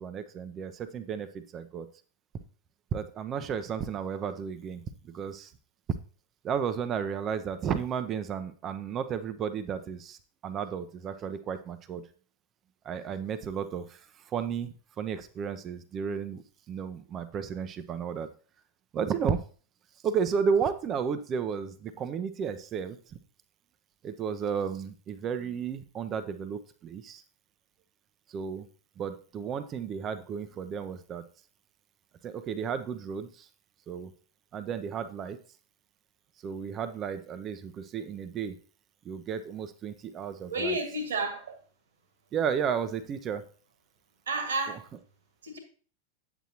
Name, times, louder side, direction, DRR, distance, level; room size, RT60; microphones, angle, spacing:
voice 1, 0.0-1.9 2.9-5.5 6.4-12.0 12.8-14.0 14.3-16.4 16.7-18.3 18.9-19.4 20.0-23.2 24.0-27.2 28.3-28.7 29.0-31.2 32.2-33.5 33.9-34.1 34.5-35.4 36.4-38.6 39.0-40.8 42.3-43.4 44.7-44.8, right 7 dB, 30° right, 10 dB, 0.6 m, -33 dB
voice 2, 40.5-41.6 44.3-44.8 45.4-45.6, right 2 dB, 65° right, 7 dB, 1.7 m, -31 dB
9.0 x 7.9 x 2.9 m, 0.39 s
figure-of-eight pair, 90°, 0 cm